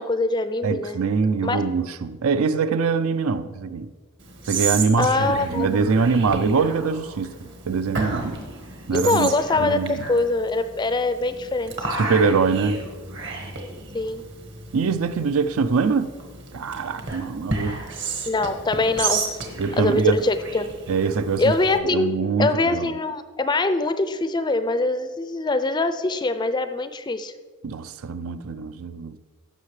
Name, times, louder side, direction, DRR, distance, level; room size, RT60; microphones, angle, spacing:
voice 1, 0.0-1.0 1.4-1.6 5.0-5.9 8.9-11.7 13.9-14.2 18.3-19.4 19.8-20.7 21.4-22.1 22.4-27.3, left 2 dB, 20° left, 0.4 m, -23 dB
voice 2, 0.6-3.9 4.5-8.4 8.9-10.0 12.0-12.8 14.7-16.1 16.5-17.8 19.6-20.3 20.9-21.5 21.9-22.9 27.6-29.2, right 5 dB, 75° right, 0.4 m, -23 dB
Whispering, 4.2-21.8, right 4 dB, 55° right, 1.3 m, -33 dB
15.5 x 6.4 x 3.2 m
head